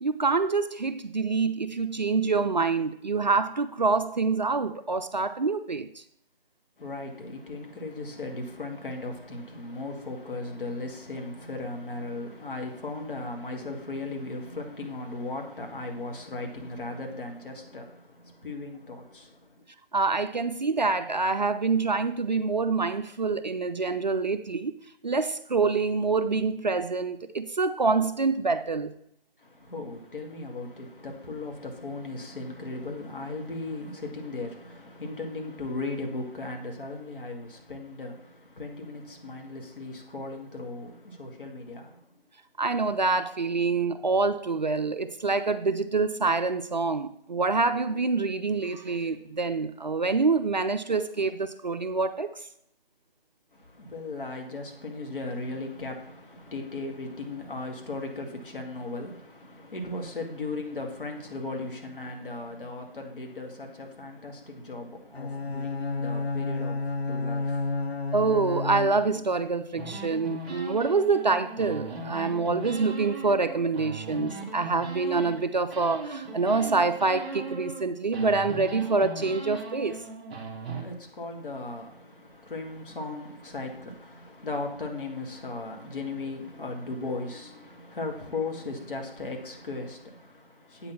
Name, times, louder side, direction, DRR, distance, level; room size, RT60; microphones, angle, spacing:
voice 1, 0.0-5.9 19.9-24.7 25.0-28.9 42.6-52.3 68.1-80.0, right 4 dB, 45° right, 0.4 m, -26 dB
voice 2, 6.8-19.6 29.4-42.1 53.5-67.9 80.6-90.9, left 2 dB, 60° left, 2.2 m, -37 dB
Bowed string instrument, 65.1-69.4, left 3 dB, 80° left, 0.9 m, -31 dB
sound 1, 69.8-75.4 75.7-77.8 78.1-80.8, right 2 dB, 10° right, 0.8 m, -38 dB
8.5 x 4.1 x 7.0 m
figure-of-eight pair, 160°, 30 cm